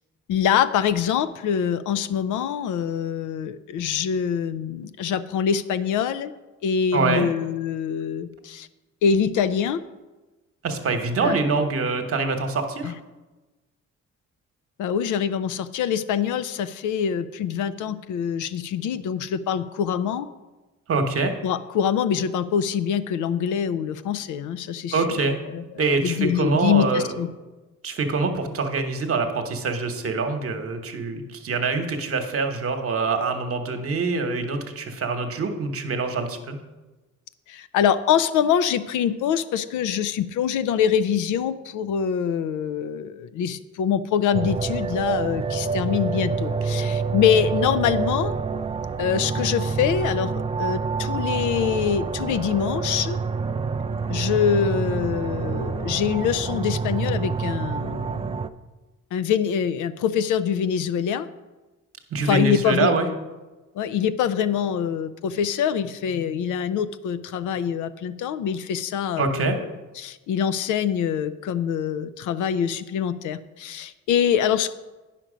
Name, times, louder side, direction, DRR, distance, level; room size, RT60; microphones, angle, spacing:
voice 1, 0.3-6.3 6.6-8.7 9.0-9.8 11.2-11.4 12.8-12.9 14.8-20.3 21.4-27.3 37.5-48.3 49.0-50.3 50.6-53.2 54.1-58.4 59.1-61.3 62.2-62.9 63.7-69.7 70.0-74.7, left 8 dB, 80° left, 13 dB, 0.5 m, -24 dB
voice 2, 6.9-7.3 10.6-12.9 20.9-21.3 24.9-25.4 25.8-27.2 27.8-36.6 62.1-63.1 69.2-69.6, right 3 dB, 50° right, 6 dB, 1.1 m, -24 dB
sound 1, 44.3-58.5, right 5 dB, 20° right, 0.3 m, -27 dB
9.1 x 6.0 x 5.0 m, 1.2 s
cardioid pair, 90°, 30 cm